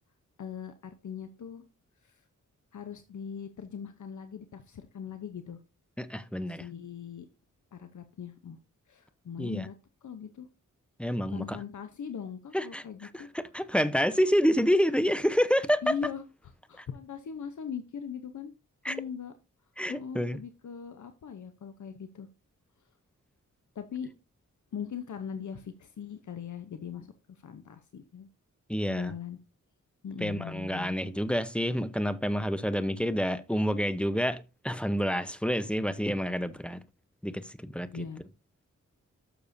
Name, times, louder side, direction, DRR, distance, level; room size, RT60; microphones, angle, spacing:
voice 1, 0.4-1.6 2.0-2.2 2.7-5.6 6.5-7.3 7.7-8.6 8.9-9.7 10.0-10.5 11.3-13.3 15.8-18.5 18.9-19.3 19.9-22.3 23.7-24.1 24.7-28.3 28.8-29.4 30.0-30.9 37.9-38.2, left 7 dB, 70° left, 0.8 m, -40 dB
voice 2, 6.0-6.6 9.4-9.7 11.0-11.6 12.5-12.8 13.1-15.9 16.8-16.9 18.8-19.0 19.8-20.4 28.7-29.1 30.2-36.8 37.2-37.9, equal, 5° left, 0.8 m, -28 dB
12.0 x 6.7 x 2.7 m
cardioid pair, 60°, 31 cm